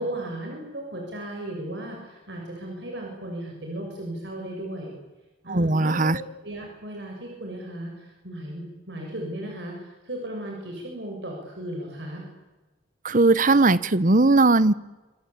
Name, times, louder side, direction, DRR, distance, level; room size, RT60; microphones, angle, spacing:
voice 1, 0.0-4.9 5.4-12.3, right 1 dB, 65° right, 0 dB, 7.5 m, -35 dB
voice 2, 5.5-6.2 13.0-14.7, right 2 dB, 45° right, 17 dB, 1.0 m, -19 dB
28.0 x 23.0 x 8.6 m, 1.1 s
head